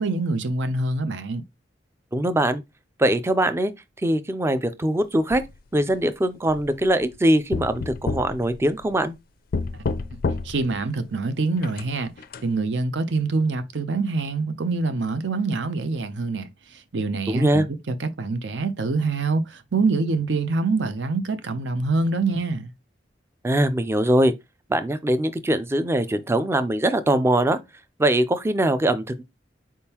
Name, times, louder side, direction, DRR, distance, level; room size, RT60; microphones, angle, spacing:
voice 1, 0.0-1.4 9.7-9.8 10.4-12.1 12.4-16.5 16.9-22.7, right 3 dB, 80° right, 0.6 m, -25 dB
voice 2, 2.1-2.6 3.0-3.7 4.0-5.4 5.7-9.1 17.3-17.7 23.4-24.3 24.7-27.6 28.0-29.2, right 1 dB, 15° right, 0.4 m, -22 dB
sound 1, 5.3-5.9 6.5-7.2 7.5-9.1 9.5-10.8 11.6-12.4, left 3 dB, 55° left, 0.4 m, -30 dB
4.4 x 3.6 x 2.8 m
head